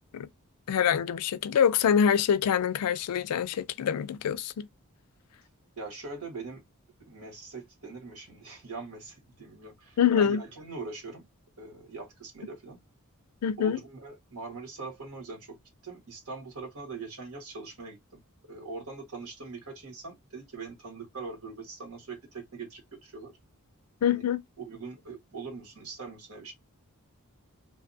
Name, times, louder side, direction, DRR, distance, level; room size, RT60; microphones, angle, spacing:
voice 1, 0.7-4.7 10.0-10.4 13.4-13.8 24.0-24.4, left 8 dB, 90° left, 0.3 m, -25 dB
voice 2, 5.8-6.6 7.0-11.2 11.6-12.8 13.6-15.5 15.8-18.0 18.5-23.3 24.1-24.2 24.6-26.5, right 3 dB, 70° right, 1.3 m, -42 dB
2.7 x 2.2 x 2.5 m
head